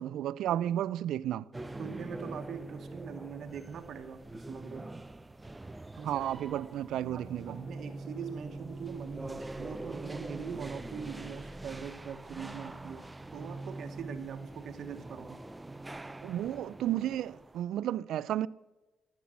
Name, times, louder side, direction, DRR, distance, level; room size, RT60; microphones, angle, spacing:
voice 1, 0.0-1.4 6.0-7.7 16.2-18.5, right 12 dB, 80° right, 0.3 m, -32 dB
sound 1, 1.5-17.6, right 2 dB, 15° right, 0.5 m, -43 dB
voice 2, 1.8-4.8 6.0-6.7 7.1-13.0 13.3-15.4, right 7 dB, 65° right, 1.0 m, -42 dB
14.0 x 7.4 x 7.4 m
cardioid pair, 90°, 0 cm